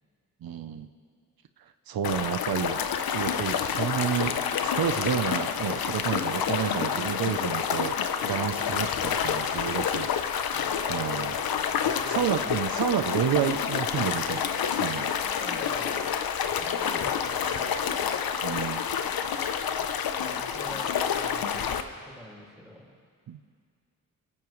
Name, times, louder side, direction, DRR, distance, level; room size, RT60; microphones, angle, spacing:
voice 1, 0.4-0.9 1.9-2.8 3.1-4.3 4.6-10.1 10.9-11.4 12.1-15.1 18.4-18.8 23.3-23.4, right 9 dB, 90° right, 9 dB, 0.7 m, -30 dB
sound 1, 2.0-21.8, left 7 dB, 90° left, 0.8 m, -28 dB
voice 2, 11.8-12.6 15.4-16.1 16.5-17.8 19.2-22.9, equal, ahead, -4 dB, 4.9 m, -46 dB
27.5 x 14.5 x 3.2 m, 2.1 s
wide cardioid pair, 90°, 35 cm